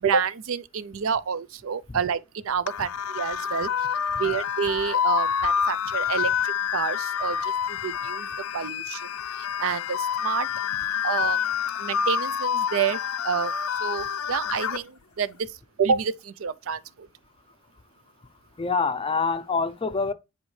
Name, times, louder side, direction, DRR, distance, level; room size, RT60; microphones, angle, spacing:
voice 1, 0.0-3.9 4.2-8.3 8.5-9.1 9.4-10.5 11.0-11.5 11.8-13.0 13.2-13.5 13.8-15.4 15.8-17.1, right 6 dB, 65° right, 0.4 m, -28 dB
sound 1, 2.7-14.8, left 8 dB, 80° left, 0.5 m, -27 dB
voice 2, 18.6-20.1, left 4 dB, 25° left, 0.5 m, -26 dB
9.9 x 4.3 x 3.2 m
head